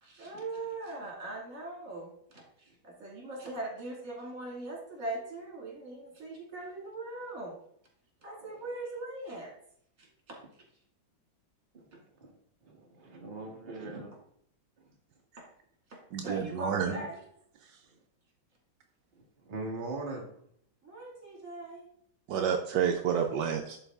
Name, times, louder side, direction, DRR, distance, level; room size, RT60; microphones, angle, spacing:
voice 1, 0.0-2.4 2.8-7.6 8.2-9.5 10.0-10.4 15.4-15.5 15.9-17.2 20.8-21.9, right 2 dB, 50° right, 0 dB, 2.5 m, -40 dB
voice 2, 11.7-14.2 14.8-14.9 16.8-17.1 19.1-20.3, right 2 dB, 30° right, -1 dB, 1.4 m, -41 dB
voice 3, 16.1-16.9 22.3-23.8, right 8 dB, 80° right, 4 dB, 1.3 m, -29 dB
11.0 x 4.1 x 3.5 m, 0.66 s
omnidirectional pair, 1.9 m